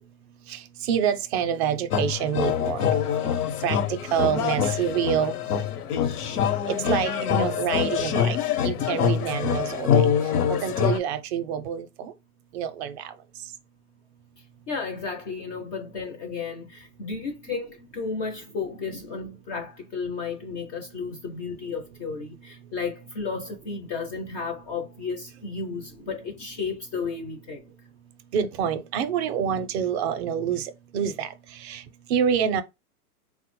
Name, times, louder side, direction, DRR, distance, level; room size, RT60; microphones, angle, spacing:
voice 1, 0.5-2.9 3.2-3.3 3.6-5.3 6.7-8.4 8.6-10.1 10.5-12.1 12.5-13.1 28.3-31.8 32.1-32.6, right 8 dB, 45° right, 0.5 m, -27 dB
sound 1, 1.9-11.0, left 8 dB, 80° left, 0.8 m, -25 dB
voice 2, 14.7-27.6, left 4 dB, 20° left, 0.3 m, -33 dB
3.7 x 2.1 x 3.0 m
hypercardioid pair, 125°, 45 cm